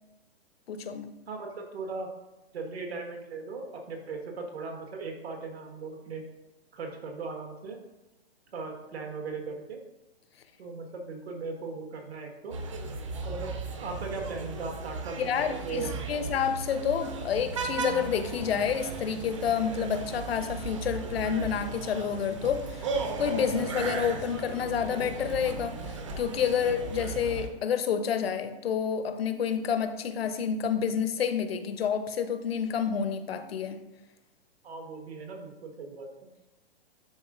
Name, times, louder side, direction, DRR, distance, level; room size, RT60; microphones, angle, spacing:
voice 1, 0.7-1.1 15.2-22.9 23.2-33.8, left 7 dB, 75° left, 9 dB, 0.8 m, -29 dB
voice 2, 1.3-2.1 2.5-6.2 6.7-7.8 8.5-9.8 10.6-12.6 12.9-13.0 13.2-13.5 13.8-16.2 34.6-36.1, right 4 dB, 90° right, 2 dB, 1.6 m, -38 dB
sound 1, 12.5-27.5, right 4 dB, 30° right, 0.5 m, -36 dB
10.5 x 3.6 x 2.5 m, 0.99 s
hypercardioid pair, 165°, 31 cm